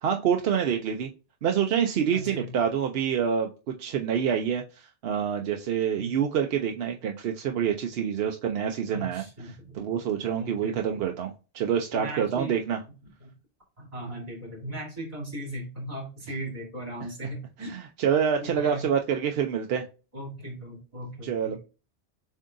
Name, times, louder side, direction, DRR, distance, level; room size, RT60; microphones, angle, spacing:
voice 1, 0.0-1.1 1.4-12.8 17.7-19.8 21.2-21.5, right 8 dB, 65° right, 0.7 m, -27 dB
voice 2, 2.1-2.6 6.0-6.1 8.9-9.9 10.4-11.0 11.9-12.5 13.2-13.4 13.8-17.7 18.4-18.9 20.1-21.6, right 1 dB, 35° right, 2.9 m, -38 dB
7.2 x 2.7 x 2.5 m
omnidirectional pair, 1.2 m